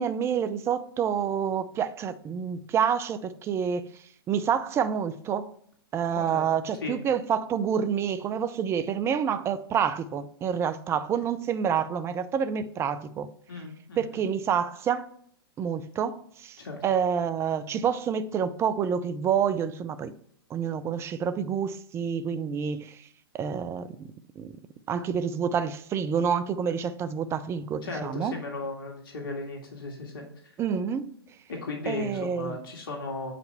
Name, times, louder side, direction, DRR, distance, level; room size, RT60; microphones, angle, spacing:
voice 1, 0.0-3.9 4.3-5.5 5.9-13.3 14.0-15.1 15.6-20.1 20.5-23.1 23.3-24.5 24.9-28.4 30.6-31.1 31.9-32.6, right 7 dB, 20° right, 0.5 m, -28 dB
voice 2, 13.5-14.2 16.6-16.8 27.8-30.5 31.5-33.3, left 3 dB, 65° left, 1.8 m, -36 dB
7.8 x 5.0 x 3.4 m
hypercardioid pair, 110°, 13 cm